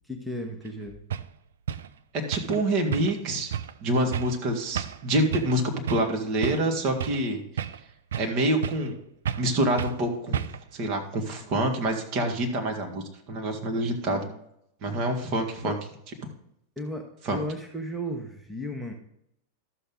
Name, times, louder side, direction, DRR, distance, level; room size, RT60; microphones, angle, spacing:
voice 1, 0.1-1.0 14.2-14.4 15.6-15.8 16.8-18.9, equal, ahead, 2 dB, 1.3 m, -35 dB
sound 1, 0.7-0.8 1.1-1.3 1.7-1.9 2.3-2.6 2.9-3.2 3.5-3.7 4.1-4.4 4.8-5.0 5.3-5.6 5.9-6.1 6.4-7.3 7.6-8.4 8.6-8.9 9.3-9.5 9.8-10.0 10.3-10.7, right 9 dB, 60° right, 0.4 m, -32 dB
voice 2, 2.1-3.5 3.8-7.4 8.2-9.0 9.4-14.2 14.8-15.7 17.3-17.4, right 1 dB, 40° right, 3 dB, 1.9 m, -27 dB
12.5 x 6.8 x 3.9 m, 0.76 s
figure-of-eight pair, 90°, 0 cm